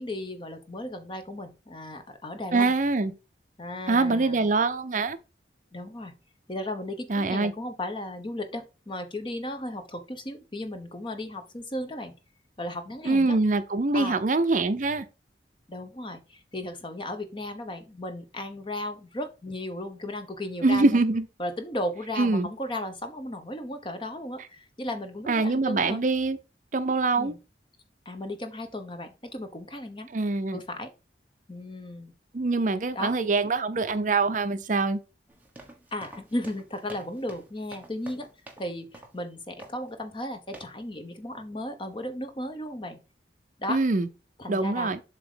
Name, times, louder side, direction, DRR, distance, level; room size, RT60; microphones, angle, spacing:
voice 1, 0.0-2.7 3.6-4.5 5.7-6.1 6.5-12.1 12.6-13.4 13.9-14.2 15.7-21.0 21.4-26.0 27.2-27.4 28.0-30.1 30.5-30.9 31.5-32.1 32.9-33.1 35.9-38.3 38.6-43.0 43.6-43.8 44.4-45.0, left 1 dB, 30° left, 1.0 m, -35 dB
voice 2, 2.5-3.1 3.9-5.2 7.1-7.5 13.0-15.0 20.6-21.3 22.2-22.5 25.3-26.4 26.7-27.3 30.1-30.6 32.3-35.0 43.7-44.1 44.5-45.0, right 3 dB, 45° right, 0.6 m, -24 dB
sound 1, 35.3-38.7 38.9-39.2 39.6-39.9 40.5-40.8, right 1 dB, 10° right, 1.2 m, -47 dB
7.5 x 2.9 x 5.0 m
head